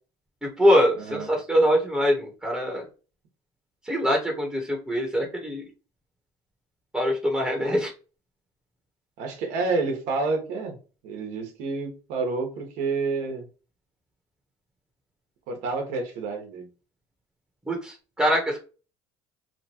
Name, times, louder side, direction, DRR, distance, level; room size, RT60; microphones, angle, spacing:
voice 1, 0.4-2.8 3.8-5.6 6.9-7.9 17.7-18.6, equal, 5° right, 0 dB, 0.9 m, -23 dB
voice 2, 1.0-1.3 7.6-7.8 9.2-10.8 11.0-13.4 15.5-16.7, right 3 dB, 75° right, 3 dB, 1.0 m, -29 dB
2.9 x 2.2 x 2.9 m, 0.34 s
supercardioid pair, 95°, 13 cm